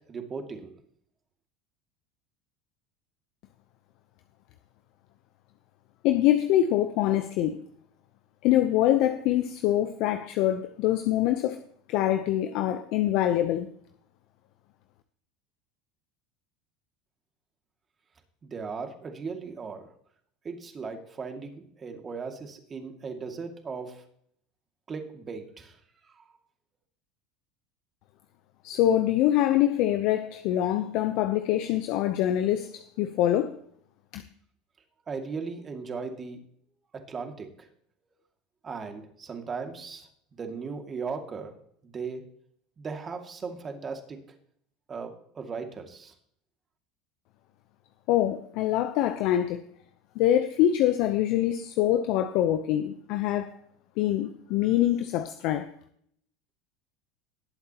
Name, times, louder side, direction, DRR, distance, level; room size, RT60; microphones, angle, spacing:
voice 1, 0.1-0.7 18.4-19.9 20.4-24.0 24.9-25.8 26.1-26.2 35.1-36.4 36.9-37.5 38.6-41.5 41.8-42.2 42.8-44.2 44.9-46.1, right 5 dB, 30° right, 2.3 m, -37 dB
voice 2, 6.0-7.6 8.4-11.6 11.9-13.7 28.6-33.6 34.1-34.2 48.1-49.6 50.2-53.6 54.0-55.7, left 12 dB, 60° left, 0.7 m, -24 dB
19.0 x 8.0 x 3.0 m
hypercardioid pair, 90°, 0 cm